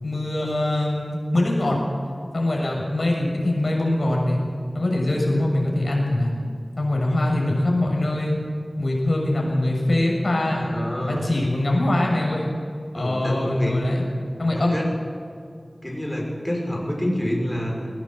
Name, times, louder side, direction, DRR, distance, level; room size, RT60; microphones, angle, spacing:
voice 1, 0.0-1.8 2.3-4.4 4.7-6.3 6.8-8.4 8.8-10.7 11.1-12.5 12.9-14.0 14.4-14.7, left 1 dB, 75° left, -1 dB, 6.8 m, -23 dB
voice 2, 10.5-11.2 12.9-13.8 14.5-14.9 15.8-17.9, equal, 15° left, -1 dB, 6.3 m, -27 dB
20.0 x 18.0 x 7.9 m, 2.3 s
wide cardioid pair, 50°, 0 cm